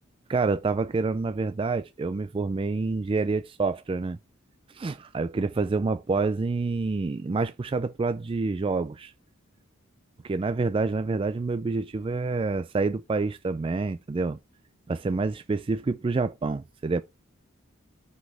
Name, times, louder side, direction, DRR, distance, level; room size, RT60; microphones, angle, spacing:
voice 1, 0.3-4.2 4.7-9.1 10.2-14.4 14.9-17.0, right 3 dB, 25° right, 0.3 m, -27 dB
7.4 x 6.1 x 3.4 m
head